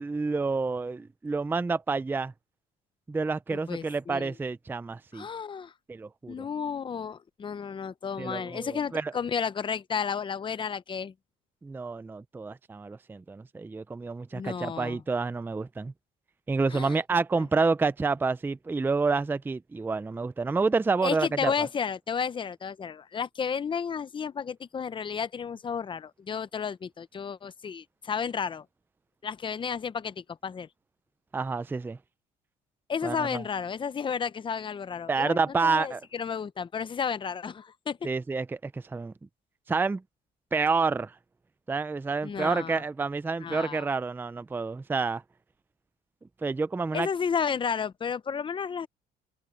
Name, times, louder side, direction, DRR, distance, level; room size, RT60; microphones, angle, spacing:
voice 1, 0.0-2.3 3.1-5.3 5.9-6.5 8.2-9.1 11.6-15.9 16.5-21.5 31.3-32.0 33.0-33.4 35.1-36.0 38.0-39.1 39.7-40.0 40.5-41.1 41.7-45.2 46.4-47.1, right 4 dB, 10° right, 0.4 m, -29 dB
voice 2, 3.5-4.3 5.1-5.7 6.3-11.1 14.3-15.0 16.7-17.0 21.0-28.6 29.2-30.7 32.9-38.0 42.2-42.8 43.4-43.9 46.9-48.9, left 6 dB, 30° left, 0.7 m, -32 dB
cardioid pair, 110°, 17 cm